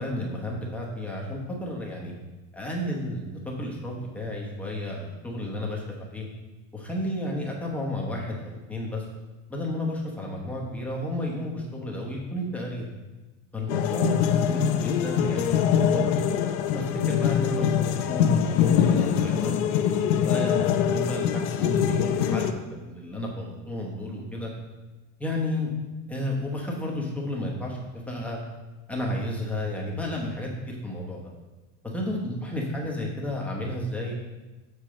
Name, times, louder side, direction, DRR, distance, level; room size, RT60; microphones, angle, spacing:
voice 1, 0.0-2.1 2.5-6.2 6.7-9.0 9.5-12.8 13.5-16.2 16.7-24.5 25.2-25.7 26.1-27.8 28.1-28.4 28.9-31.2 31.9-34.1, left 1 dB, 5° left, -3 dB, 0.9 m, -32 dB
sound 1, 13.7-22.5, left 8 dB, 65° left, 0.6 m, -23 dB
6.8 x 4.5 x 6.2 m, 1.2 s
cardioid pair, 175°, 38 cm